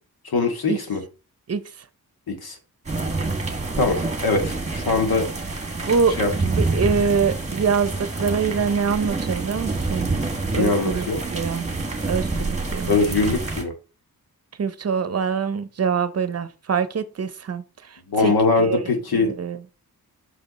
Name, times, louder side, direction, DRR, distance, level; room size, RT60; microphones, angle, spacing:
voice 1, 0.2-1.0 2.3-2.6 3.8-5.3 6.2-6.3 10.6-11.2 12.9-13.7 18.1-19.3, left 3 dB, 75° left, 1.9 m, -22 dB
sound 1, 2.9-13.6, right 3 dB, 20° right, 1.5 m, -27 dB
voice 2, 5.8-10.1 10.5-11.7 12.1-13.0 14.6-18.8 19.1-19.6, right 6 dB, 40° right, 0.8 m, -24 dB
6.2 x 5.2 x 4.1 m
cardioid pair, 85°, 37 cm